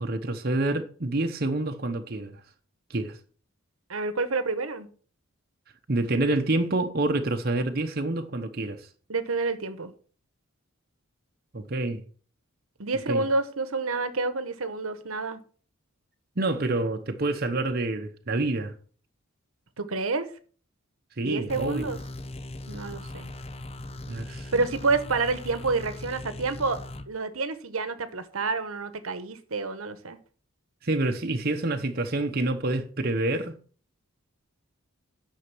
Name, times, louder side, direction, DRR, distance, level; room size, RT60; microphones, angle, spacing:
voice 1, 0.0-2.4 2.9-3.2 5.9-8.9 11.5-12.0 13.1-13.2 16.4-18.7 21.2-21.9 24.1-24.7 30.8-33.5, right 2 dB, 45° right, 0.9 m, -27 dB
voice 2, 3.9-4.9 9.1-9.9 12.8-15.4 19.8-20.3 21.2-22.0 22.7-23.3 24.5-26.8 27.1-30.2, right 3 dB, 80° right, 1.1 m, -28 dB
sound 1, 21.5-27.1, left 2 dB, 30° left, 0.7 m, -39 dB
9.8 x 6.4 x 6.1 m
head